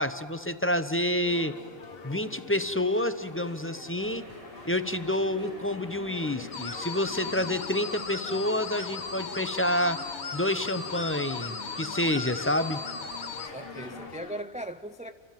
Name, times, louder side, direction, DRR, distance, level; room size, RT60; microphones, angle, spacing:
voice 1, 0.0-1.6 2.0-4.3 4.6-10.0 10.3-12.8, left 1 dB, 15° left, 0.8 m, -28 dB
sound 1, 1.2-14.4, left 5 dB, 60° left, 1.3 m, -45 dB
sound 2, 4.0-14.1, equal, 30° right, 2.8 m, -50 dB
sound 3, 6.5-13.5, left 5 dB, 85° left, 1.6 m, -37 dB
voice 2, 13.4-15.1, right 1 dB, 10° right, 0.4 m, -38 dB
30.0 x 24.5 x 7.5 m
omnidirectional pair, 1.1 m